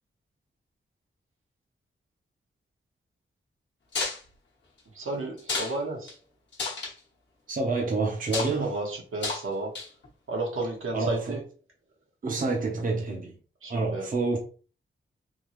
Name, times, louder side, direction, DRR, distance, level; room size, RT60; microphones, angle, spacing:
sound 1, 3.9-4.2 5.4-5.7 6.1-6.2 6.5-6.9 8.2-8.5 9.2-9.4 9.7-10.1, left 4 dB, 60° left, 1.1 m, -31 dB
voice 1, 4.9-6.1 8.6-9.8 10.3-11.4 13.6-14.1, right 2 dB, 85° right, 1.4 m, -32 dB
voice 2, 7.5-8.7 10.9-11.4 12.2-13.3 13.7-14.4, right 3 dB, 40° right, 0.7 m, -28 dB
3.6 x 2.8 x 3.0 m
wide cardioid pair, 165°, 21 cm